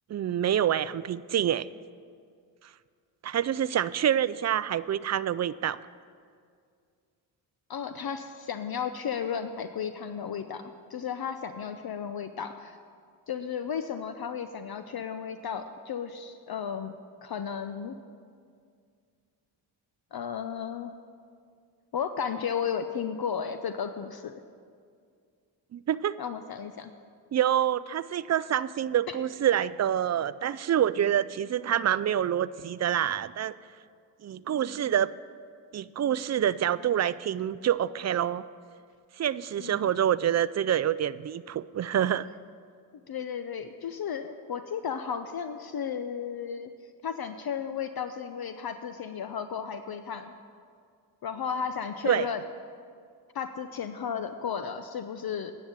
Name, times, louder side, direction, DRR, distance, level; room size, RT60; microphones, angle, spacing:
voice 1, 0.1-1.7 3.2-5.8 25.7-26.2 27.3-33.6 34.2-35.1 35.7-38.4 39.2-42.3 52.1-52.3, right 10 dB, 40° right, 17 dB, 0.4 m, -27 dB
voice 2, 7.7-10.6 10.9-12.8 13.3-16.9 17.2-18.0 20.1-20.9 21.9-24.3 26.2-26.9 29.1-29.2 39.6-39.8 43.1-46.7 47.0-50.3 51.2-52.4 53.3-55.5, left 7 dB, 50° left, 9 dB, 0.7 m, -34 dB
10.5 x 7.3 x 8.2 m, 2.2 s
supercardioid pair, 50°, 46 cm